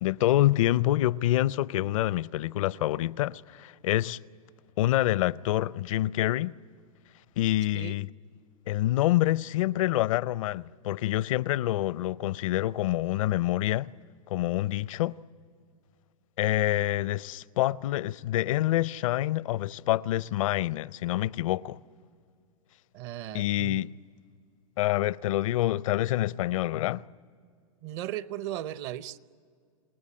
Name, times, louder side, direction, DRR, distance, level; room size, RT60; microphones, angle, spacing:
voice 1, 0.0-4.2 4.8-6.5 7.4-8.1 8.7-13.9 14.3-15.2 16.4-21.8 23.3-23.9 24.8-27.0, left 15 dB, 65° left, 0.6 m, -27 dB
voice 2, 22.9-23.8 27.8-29.2, right 13 dB, 50° right, 0.8 m, -36 dB
28.5 x 18.5 x 9.9 m
hypercardioid pair, 115°, 19 cm